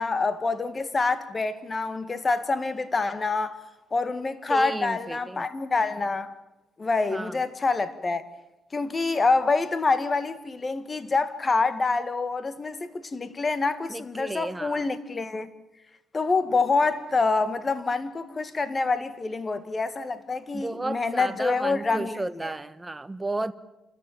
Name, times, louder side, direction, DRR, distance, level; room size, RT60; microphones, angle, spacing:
voice 1, 0.0-3.6 3.9-6.3 6.8-8.2 8.7-15.5 16.1-22.5, left 3 dB, 30° left, 2.0 m, -26 dB
voice 2, 4.5-5.5 7.1-7.4 13.9-14.9 20.5-23.5, right 2 dB, 15° right, 1.3 m, -33 dB
28.5 x 14.0 x 9.3 m
cardioid pair, 90°, 0 cm